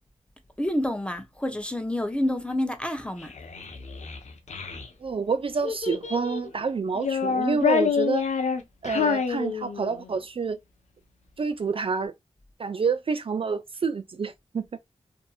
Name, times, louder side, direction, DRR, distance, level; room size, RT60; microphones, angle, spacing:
voice 1, 0.6-3.3, left 1 dB, 10° left, 0.6 m, -28 dB
Child speech kid speaking, 3.2-4.9 5.6-6.5 6.9-10.1, left 6 dB, 80° left, 0.5 m, -27 dB
voice 2, 5.0-8.3 8.8-10.6 11.4-12.1 12.6-14.6, right 5 dB, 50° right, 0.3 m, -28 dB
2.6 x 2.5 x 2.3 m
cardioid pair, 45°, 12 cm